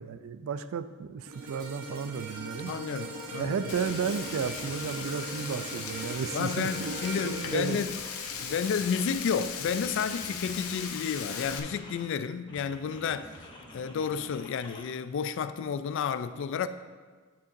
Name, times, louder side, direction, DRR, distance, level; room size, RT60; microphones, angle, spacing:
voice 1, 0.0-2.8 3.4-7.8, right 6 dB, 70° right, 0.3 m, -33 dB
sound 1, 1.3-9.6 10.1-10.3, right 2 dB, 85° right, 0.9 m, -41 dB
voice 2, 2.6-3.6 6.3-8.0 8.4-13.3 13.7-16.7, left 6 dB, 60° left, 0.3 m, -31 dB
sound 2, 3.3-3.4 3.8-6.3 6.7-9.2 9.6-12.1 12.5-14.8, left 1 dB, 20° left, 0.8 m, -49 dB
Frying (food), 3.7-11.6, left 6 dB, 80° left, 0.7 m, -38 dB
8.4 x 6.7 x 2.6 m
head